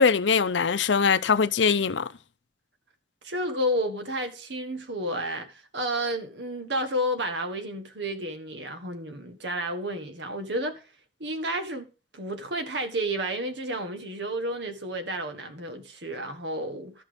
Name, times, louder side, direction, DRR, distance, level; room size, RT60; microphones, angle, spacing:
voice 1, 0.0-2.1, left 5 dB, 90° left, 0.6 m, -22 dB
voice 2, 3.2-10.8 11.2-17.0, right 1 dB, 75° right, 1.6 m, -31 dB
13.5 x 5.8 x 5.2 m
head